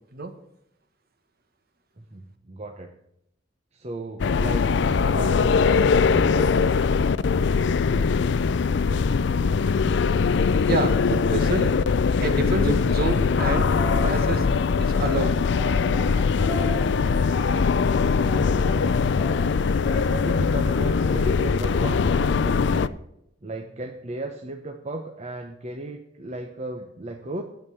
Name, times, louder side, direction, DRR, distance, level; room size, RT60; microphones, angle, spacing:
voice 1, 2.0-2.9 3.7-6.6 18.6-19.1 19.8-23.0 23.4-27.4, right 2 dB, 35° right, 4 dB, 0.9 m, -35 dB
sound 1, 4.2-22.9, left 5 dB, 65° left, 0.4 m, -21 dB
voice 2, 10.7-11.7 12.2-13.7 14.0-14.5 14.8-15.4, right 2 dB, 55° right, 8 dB, 1.5 m, -28 dB
sound 2, 13.7-14.2 15.0-17.9 18.2-19.7 20.9-22.3, equal, 20° right, 1.6 m, -38 dB
10.5 x 8.4 x 7.0 m, 0.80 s
head